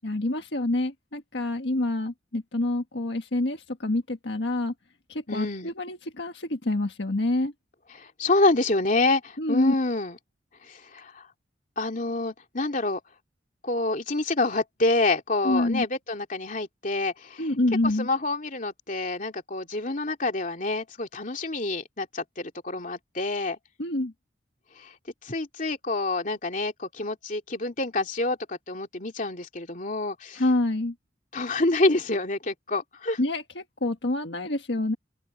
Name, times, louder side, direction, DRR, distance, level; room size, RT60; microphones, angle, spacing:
voice 1, 0.0-4.7 5.1-7.5 9.4-9.7 15.4-15.8 17.4-18.1 23.8-24.1 30.4-30.9 33.2-35.0, left 1 dB, 70° left, 1.5 m, -27 dB
voice 2, 5.3-5.7 7.9-10.2 10.6-11.3 11.8-13.0 13.6-17.5 18.0-23.6 24.8-24.9 25.2-30.4 31.3-33.2, left 2 dB, 45° left, 2.9 m, -27 dB
open air
head